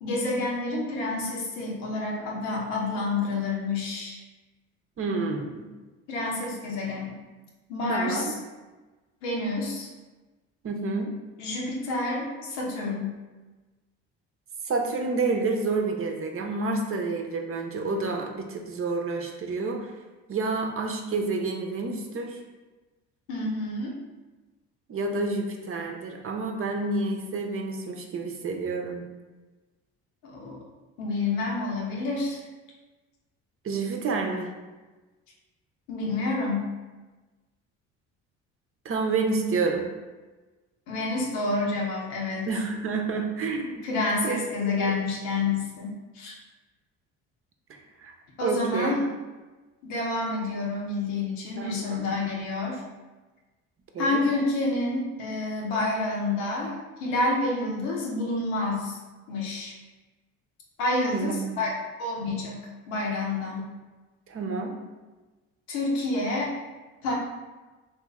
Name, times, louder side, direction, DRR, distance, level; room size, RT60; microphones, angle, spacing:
voice 1, 0.0-4.2 6.1-7.2 7.7-8.4 9.2-9.9 11.4-13.2 23.3-23.9 30.2-30.6 31.0-32.4 35.9-36.7 40.9-42.5 43.8-46.3 48.4-49.0 49.8-52.8 54.0-56.7 57.0-59.0 59.3-59.7 60.8-61.7 62.0-63.7 65.7-66.5 67.0-67.1, left 2 dB, 90° left, -2 dB, 0.9 m, -28 dB
voice 2, 5.0-5.7 7.9-8.3 10.6-11.1 14.7-19.9 20.3-22.4 24.9-29.0 33.6-34.5 38.8-39.9 42.5-43.9 44.2-44.4 44.8-44.9 47.7-48.1 48.4-48.9 51.6-52.1 53.9-54.2 61.1-61.5 64.3-64.8, right 3 dB, 40° right, 2 dB, 0.7 m, -29 dB
3.0 x 2.7 x 3.6 m, 1.2 s
supercardioid pair, 70°, 32 cm